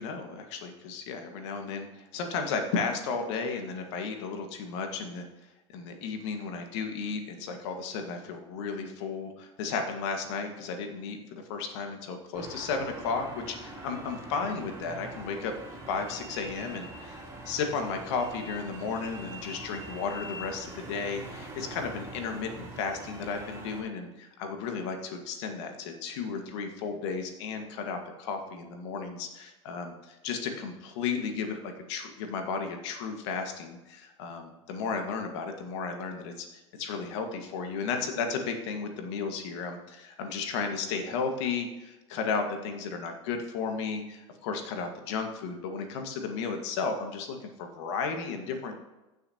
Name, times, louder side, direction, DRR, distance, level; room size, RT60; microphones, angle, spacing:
voice 1, 0.0-5.2 5.7-15.5 15.9-48.8, left 5 dB, 65° left, 5 dB, 1.7 m, -34 dB
sound 1, 12.3-23.8, right 1 dB, 20° right, 3.1 m, -43 dB
15.0 x 6.7 x 2.9 m, 1.0 s
hypercardioid pair, 95°, 15 cm